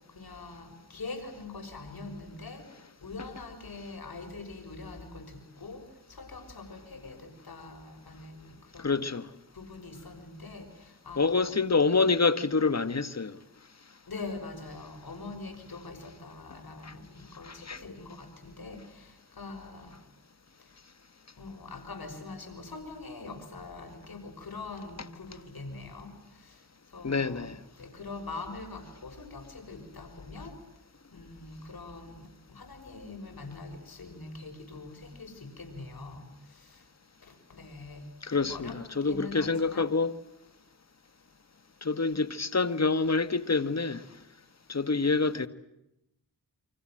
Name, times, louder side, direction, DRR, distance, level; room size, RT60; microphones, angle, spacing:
voice 1, 0.1-2.6 3.0-8.9 9.5-11.4 14.1-20.0 21.4-26.1 26.4-26.6 26.9-27.5 27.8-30.6 31.1-36.2 36.5-36.8 37.2-38.0 38.4-38.7 39.0-39.9, left 3 dB, 70° left, 6.3 m, -43 dB
voice 2, 8.8-9.3 11.2-13.4 16.8-16.9 17.4-17.8 25.0-25.1 27.0-27.6 38.2-40.1 41.8-44.0 44.7-45.5, left 4 dB, 45° left, 1.7 m, -27 dB
29.0 x 25.0 x 7.7 m
cardioid pair, 45°, 38 cm